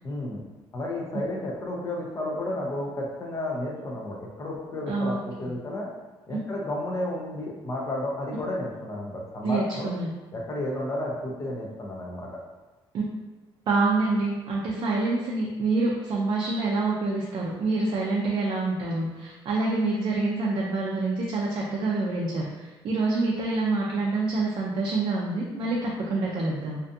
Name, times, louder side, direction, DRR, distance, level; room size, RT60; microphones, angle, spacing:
voice 1, 0.0-0.4 0.7-5.9 6.3-9.9 10.3-12.3, left 1 dB, 30° left, -2 dB, 0.5 m, -32 dB
voice 2, 4.9-5.5 9.4-10.1 12.9-13.0 13.7-26.8, right 3 dB, 55° right, -3 dB, 0.4 m, -26 dB
2.5 x 2.2 x 2.5 m, 1.2 s
cardioid pair, 140°, 10 cm